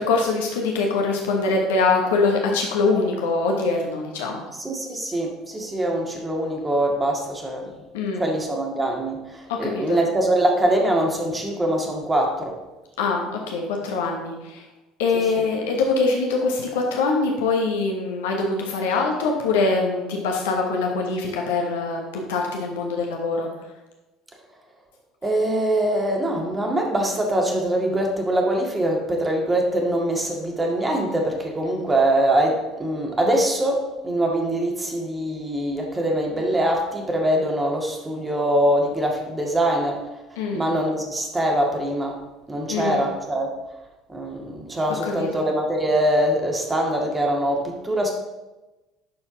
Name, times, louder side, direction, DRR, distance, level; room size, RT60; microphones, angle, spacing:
voice 1, 0.0-4.5 7.9-8.2 9.5-10.0 13.0-14.6 15.0-23.5 40.4-40.7 42.7-43.0 45.0-45.3, left 3 dB, 70° left, 1 dB, 1.1 m, -23 dB
voice 2, 4.6-7.7 8.2-12.6 25.2-40.0 40.5-42.2 42.5-43.5 44.1-48.1, right 1 dB, 20° right, 1 dB, 1.9 m, -23 dB
11.5 x 4.5 x 3.9 m, 1.1 s
figure-of-eight pair, 60°, 0 cm